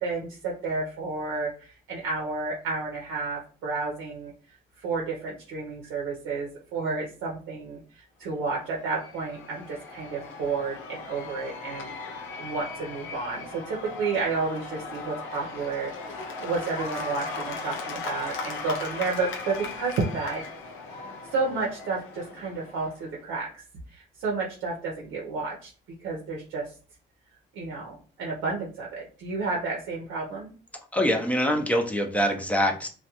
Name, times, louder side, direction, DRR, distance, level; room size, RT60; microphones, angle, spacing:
voice 1, 0.0-4.3 4.8-11.9 12.4-20.4 21.3-23.6 23.9-25.7 26.0-26.7 27.5-30.5, right 4 dB, 90° right, -2 dB, 0.6 m, -31 dB
Cheering / Applause / Crowd, 8.4-23.2, left 3 dB, 85° left, 0.5 m, -38 dB
voice 2, 30.9-32.9, equal, 5° left, 3 dB, 0.4 m, -24 dB
2.3 x 2.1 x 2.8 m, 0.38 s
cardioid pair, 90°, 20 cm